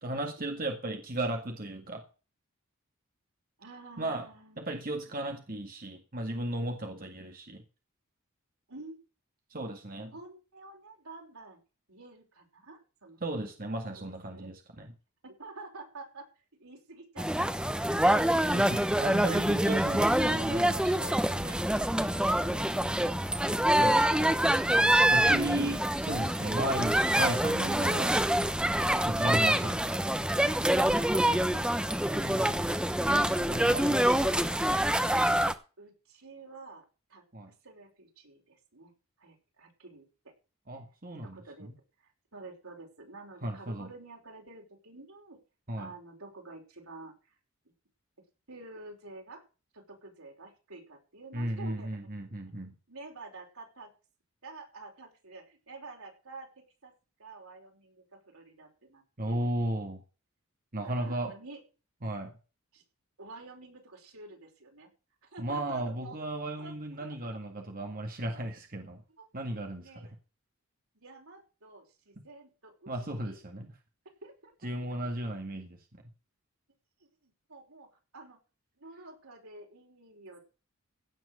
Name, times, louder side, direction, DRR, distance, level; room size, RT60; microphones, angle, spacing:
voice 1, 0.0-2.0 4.0-4.3 4.6-7.6 9.5-10.1 13.2-14.9 18.5-21.6 23.8-24.3 25.1-28.1 29.0-29.8 32.1-32.7 33.5-35.0 37.3-37.5 40.7-41.4 43.4-43.9 45.7-45.9 51.3-52.7 59.2-60.0 60.7-61.3 62.0-62.3 65.4-69.0 69.3-69.9 72.9-73.7 74.6-75.7, right 1 dB, 40° right, 3 dB, 1.9 m, -35 dB
voice 2, 3.6-4.7 8.7-9.0 10.1-11.6 11.9-13.4 13.9-14.0 14.3-14.5 15.2-16.3 16.6-18.1 19.8-20.5 35.8-37.2 37.6-38.9 39.2-40.3 41.2-41.7 42.0-45.4 45.7-47.1 48.5-49.4 49.7-52.0 52.9-53.9 54.4-56.9 57.2-59.5 60.8-61.6 62.7-62.8 63.2-64.9 65.2-66.2 66.6-66.7 67.0-67.4 68.3-68.4 69.2-69.3 69.7-70.1 70.9-72.9 73.2-73.4 74.2-74.7 77.2-78.4 78.8-80.4, right 3 dB, 90° right, 1 dB, 5.4 m, -49 dB
sound 1, 17.2-35.5, right 1 dB, 5° right, 0.8 m, -26 dB
16.5 x 6.3 x 6.7 m, 0.34 s
head